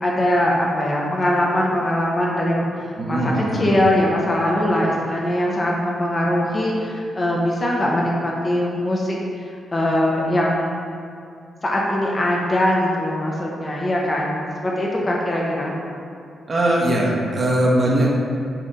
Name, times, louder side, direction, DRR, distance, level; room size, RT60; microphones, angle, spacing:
voice 1, 0.0-9.2 9.7-10.9 11.6-15.7, left 1 dB, 20° left, -3 dB, 0.7 m, -21 dB
voice 2, 3.0-3.6 16.5-18.2, right 1 dB, 35° right, -4 dB, 1.2 m, -20 dB
7.4 x 3.2 x 5.5 m, 2.4 s
wide cardioid pair, 165°, 0 cm